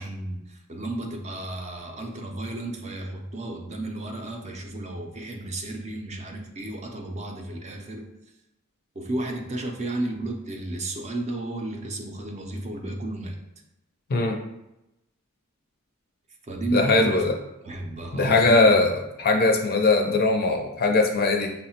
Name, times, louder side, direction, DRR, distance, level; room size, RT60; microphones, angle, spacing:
voice 1, 0.0-8.0 9.0-13.4 16.5-17.2 17.6-18.7, right 2 dB, 30° right, 3 dB, 0.4 m, -32 dB
voice 2, 16.7-17.3 18.1-18.9 19.2-21.5, left 3 dB, 45° left, 3 dB, 0.5 m, -20 dB
5.4 x 2.1 x 2.8 m, 0.89 s
head